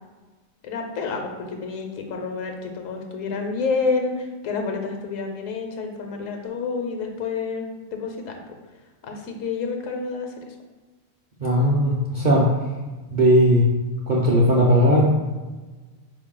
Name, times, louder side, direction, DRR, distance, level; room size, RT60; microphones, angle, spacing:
voice 1, 0.6-8.4 9.0-10.5, left 4 dB, 75° left, 3 dB, 1.0 m, -29 dB
voice 2, 11.4-12.5 13.1-13.7 14.1-15.1, equal, 55° right, -4 dB, 0.5 m, -17 dB
4.5 x 2.6 x 3.7 m, 1.3 s
omnidirectional pair, 1.4 m